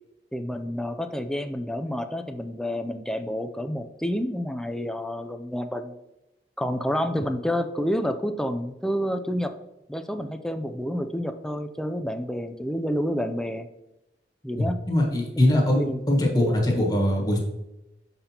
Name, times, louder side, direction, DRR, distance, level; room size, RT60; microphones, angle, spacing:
voice 1, 0.3-5.9 6.6-9.5 9.9-13.7 14.4-14.8 15.5-16.0, equal, 5° left, 7 dB, 0.4 m, -29 dB
voice 2, 14.6-17.5, left 1 dB, 25° left, 0 dB, 1.3 m, -22 dB
6.7 x 5.7 x 2.8 m, 0.94 s
head